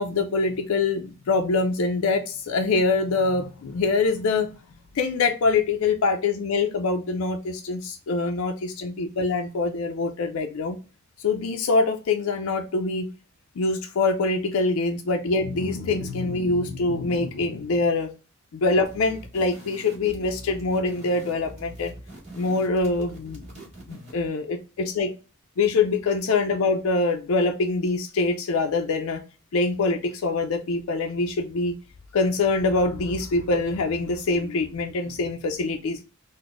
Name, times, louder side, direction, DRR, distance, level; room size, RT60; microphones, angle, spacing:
voice 1, 0.0-4.5 4.9-10.8 11.2-13.1 13.6-18.1 18.5-22.0 22.3-25.1 25.6-29.2 29.5-31.7 32.1-36.0, left 3 dB, 75° left, 4 dB, 0.4 m, -24 dB
sound 1, 18.8-24.3, right 1 dB, 35° right, 1.6 m, -43 dB
4.0 x 2.0 x 3.0 m, 0.34 s
head